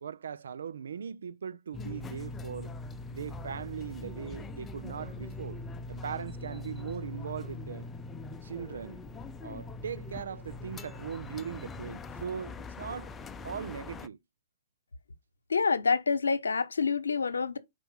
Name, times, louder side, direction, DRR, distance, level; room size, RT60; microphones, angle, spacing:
voice 1, 0.0-2.7 3.1-5.6 5.9-7.9 8.4-9.0 9.4-13.1 13.4-14.2, right 7 dB, 70° right, 0.4 m, -39 dB
sound 1, 1.7-14.1, left 2 dB, 15° left, 0.5 m, -42 dB
voice 2, 15.5-17.6, left 5 dB, 85° left, 0.8 m, -27 dB
4.8 x 4.4 x 5.5 m
hypercardioid pair, 125°, 0 cm